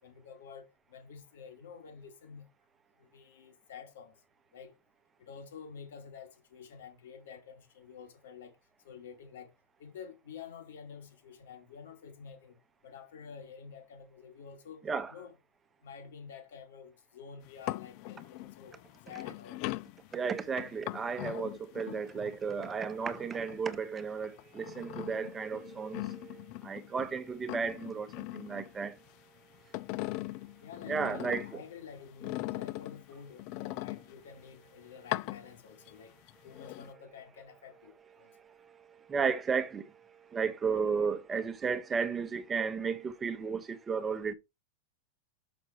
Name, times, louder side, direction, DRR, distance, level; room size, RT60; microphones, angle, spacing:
voice 1, 0.0-2.5 3.0-4.1 4.5-4.8 5.2-8.6 8.8-9.5 9.8-12.6 12.8-14.8 15.1-15.4 15.8-19.6 30.6-36.1 36.4-38.3, left 6 dB, 85° left, 2.9 m, -49 dB
sound 1, 17.4-23.8 24.2-27.1 27.4-29.2 29.5-31.7 32.2-34.4 35.0-35.9 36.3-36.9, left 18 dB, 40° left, 0.4 m, -41 dB
voice 2, 20.1-29.0 30.9-31.4 39.1-39.9 40.3-44.3, right 5 dB, 15° right, 0.9 m, -33 dB
6.4 x 6.1 x 4.4 m
supercardioid pair, 160°, 0 cm